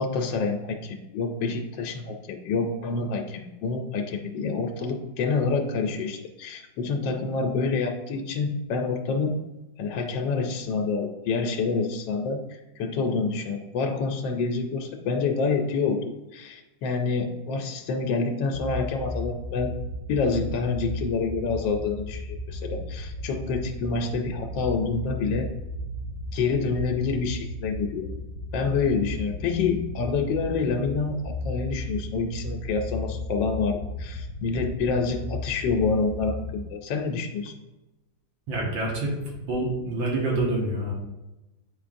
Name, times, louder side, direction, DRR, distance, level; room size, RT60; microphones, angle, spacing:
voice 1, 0.0-9.4 9.8-19.7 20.1-25.5 26.3-28.1 28.5-37.5, left 4 dB, 80° left, 3 dB, 1.3 m, -27 dB
sound 1, 18.5-36.6, left 1 dB, 35° left, 0.6 m, -35 dB
voice 2, 38.5-40.9, right 2 dB, 85° right, -2 dB, 2.2 m, -27 dB
8.9 x 4.5 x 2.5 m, 1.0 s
omnidirectional pair, 2.0 m